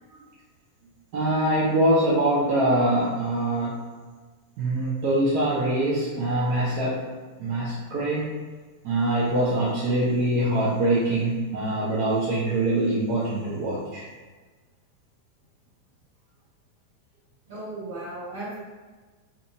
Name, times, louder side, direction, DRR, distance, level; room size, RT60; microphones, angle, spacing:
voice 1, 1.1-3.9 4.6-7.0 7.4-8.3 8.8-14.0, right 1 dB, 55° right, -8 dB, 0.6 m, -24 dB
voice 2, 17.4-18.6, right 2 dB, 75° right, -9 dB, 1.5 m, -36 dB
2.6 x 2.3 x 2.7 m, 1.4 s
hypercardioid pair, 100°, 0 cm